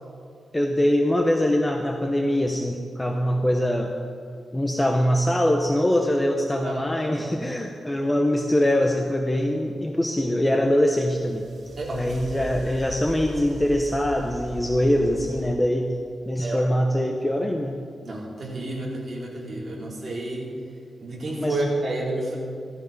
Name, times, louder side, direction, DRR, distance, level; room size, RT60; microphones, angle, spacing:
voice 1, 0.5-3.9 4.5-11.5 11.9-15.9 16.3-17.8 21.4-21.6, left 1 dB, 10° left, 3 dB, 1.0 m, -23 dB
voice 2, 6.6-7.3 11.8-12.3 16.4-16.6 18.0-20.5 21.0-22.4, right 2 dB, 40° right, -4 dB, 4.4 m, -30 dB
sound 1, 10.9-15.5, right 3 dB, 70° right, 2.1 m, -39 dB
16.5 x 14.5 x 5.4 m, 2.3 s
wide cardioid pair, 115°, 0 cm